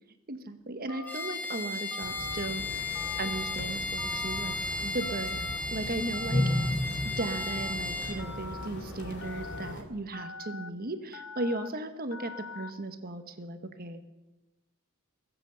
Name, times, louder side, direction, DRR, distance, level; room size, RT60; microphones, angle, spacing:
voice 1, 0.3-2.9 3.2-4.6 4.8-6.8 7.0-14.1, right 2 dB, 45° right, 8 dB, 1.2 m, -36 dB
Telephone, 0.9-1.3 1.9-2.5 2.9-3.6 4.0-4.5 5.0-5.6 6.1-6.7 7.2-7.7 8.2-8.7 9.2-9.7 10.1-10.7 11.1-11.7 12.1-12.7, left 4 dB, 80° left, 0.8 m, -43 dB
Bowed string instrument, 1.1-8.2, left 3 dB, 10° left, 1.8 m, -35 dB
sound 1, 2.0-9.8, left 1 dB, 55° left, 2.7 m, -35 dB
22.0 x 8.0 x 6.8 m, 1.0 s
head